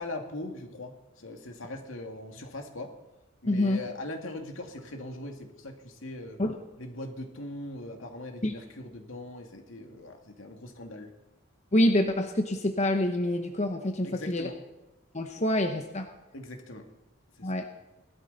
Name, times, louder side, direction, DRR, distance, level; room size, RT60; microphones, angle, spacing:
voice 1, 0.0-2.9 3.4-6.4 6.8-11.1 14.0-14.6 16.3-16.9 17.4-17.6, left 1 dB, 75° left, 3 dB, 2.3 m, -40 dB
voice 2, 3.5-3.8 6.4-6.5 8.4-8.5 11.7-14.5 15.1-16.0 17.4-17.7, left 1 dB, 35° left, 5 dB, 0.9 m, -26 dB
18.5 x 12.5 x 4.1 m, 1.0 s
head